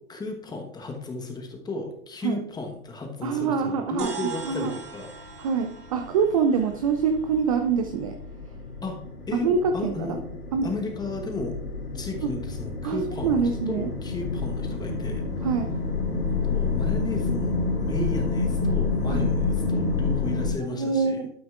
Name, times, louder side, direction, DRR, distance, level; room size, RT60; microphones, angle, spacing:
voice 1, 0.1-5.1 8.8-9.0 9.3-10.2 10.6-11.6 11.9-15.3 16.3-21.2, left 3 dB, 10° left, 3 dB, 1.1 m, -34 dB
voice 2, 3.2-4.7 5.4-8.2 9.3-10.2 10.5-10.7 12.2-12.3 12.8-13.9 15.4-15.7 19.1-19.2 20.7-21.3, right 5 dB, 25° right, 6 dB, 0.4 m, -25 dB
sound 1, 4.0-8.6, right 5 dB, 85° right, 2.3 m, -42 dB
sound 2, 5.1-20.5, left 4 dB, 90° left, 2.8 m, -29 dB
12.0 x 9.0 x 2.4 m, 0.77 s
hypercardioid pair, 120°, 45 cm